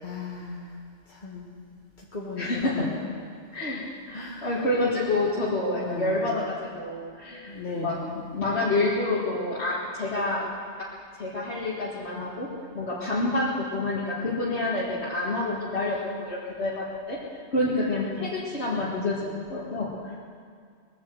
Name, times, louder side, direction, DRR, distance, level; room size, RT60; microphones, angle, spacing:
voice 1, 0.0-1.5 2.0-3.1 4.1-4.6 5.8-6.4 7.5-8.4 18.1-18.3, left 3 dB, 45° left, -4 dB, 2.0 m, -37 dB
voice 2, 2.4-2.9 3.5-8.0 8.3-10.5 11.2-12.5 12.7-17.2 17.5-20.1, left 2 dB, 80° left, -8 dB, 2.4 m, -28 dB
21.5 x 8.4 x 7.9 m, 2.1 s
omnidirectional pair, 1.1 m